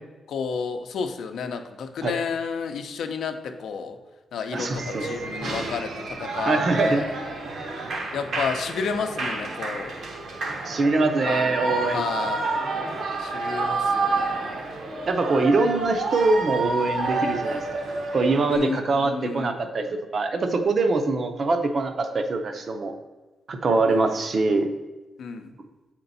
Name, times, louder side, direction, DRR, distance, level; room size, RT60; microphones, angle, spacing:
voice 1, 0.3-4.0 4.3-7.1 8.1-9.9 11.2-12.7 13.2-14.5 18.5-19.5 23.9-24.1 25.2-25.5, left 6 dB, 80° left, 6 dB, 0.6 m, -31 dB
voice 2, 4.5-5.1 6.4-7.0 10.6-12.3 15.1-17.6 18.1-22.9 23.5-24.7, right 3 dB, 40° right, 7 dB, 0.6 m, -23 dB
Shout / Cheering, 4.7-18.6, right 3 dB, 65° right, 0.9 m, -29 dB
7.8 x 4.5 x 4.0 m, 1.2 s
wide cardioid pair, 165°, 0 cm